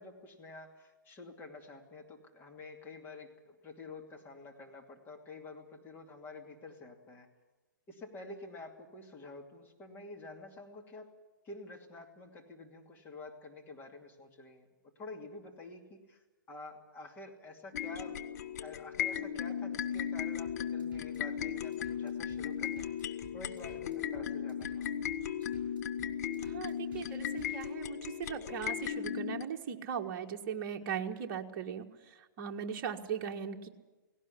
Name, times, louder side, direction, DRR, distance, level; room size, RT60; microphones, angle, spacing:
voice 1, 0.0-7.3 7.9-11.1 11.4-18.2 18.6-25.0 25.4-25.6, left 2 dB, 20° left, 2 dB, 2.7 m, -49 dB
sound 1, 17.7-29.4, left 9 dB, 50° left, 1.1 m, -36 dB
sound 2, 20.5-27.7, right 4 dB, 10° right, 7.7 m, -56 dB
voice 2, 26.4-33.7, right 7 dB, 40° right, 2 dB, 1.7 m, -39 dB
17.5 x 17.5 x 9.9 m, 1.2 s
hypercardioid pair, 130°, 11 cm